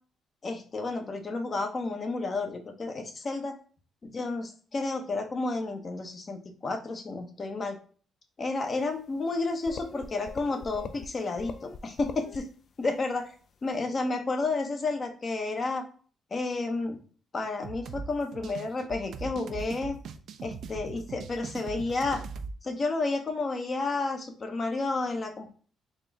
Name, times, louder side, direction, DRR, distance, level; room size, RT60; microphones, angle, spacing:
voice 1, 0.4-3.6 4.0-7.8 8.4-12.5 12.8-13.3 13.6-15.8 16.3-17.0 17.3-20.0 20.4-22.2 22.6-25.5, left 3 dB, 40° left, 5 dB, 0.8 m, -31 dB
sound 1, 9.4-9.5 9.6-11.1 11.4-12.4, left 5 dB, 55° left, 0.4 m, -41 dB
sound 2, 17.6-22.5, right 5 dB, 70° right, 0.4 m, -40 dB
4.1 x 2.5 x 3.4 m, 0.41 s
cardioid pair, 90°, 0 cm